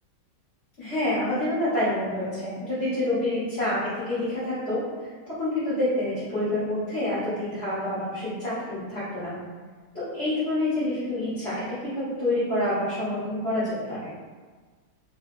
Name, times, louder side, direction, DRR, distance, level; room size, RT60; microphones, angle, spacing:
voice 1, 0.8-4.8 5.4-9.4 9.9-14.1, left 1 dB, 35° left, -13 dB, 1.7 m, -27 dB
3.3 x 3.2 x 3.3 m, 1.5 s
omnidirectional pair, 2.0 m